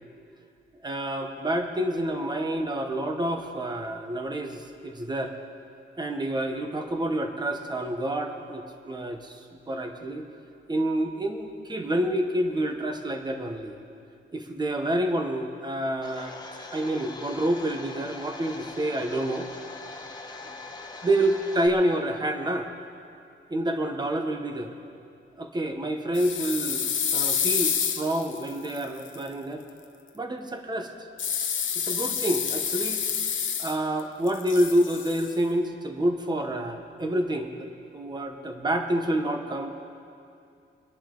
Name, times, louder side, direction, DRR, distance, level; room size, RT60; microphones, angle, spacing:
voice 1, 0.8-5.3 6.0-10.2 10.7-13.8 14.3-16.3 16.7-19.5 20.4-20.5 21.0-22.7 23.5-24.7 25.4-29.6 30.1-30.9 31.7-33.0 33.6-37.7 37.9-39.7, right 1 dB, 20° right, 5 dB, 1.1 m, -28 dB
Domestic sounds home sounds, 16.0-21.7, left 3 dB, 20° left, 1.1 m, -42 dB
sound 1, 26.1-29.2 31.2-34.0 34.3-35.3, left 7 dB, 70° left, 0.9 m, -28 dB
24.5 x 11.0 x 3.9 m, 2.4 s
wide cardioid pair, 165°, 21 cm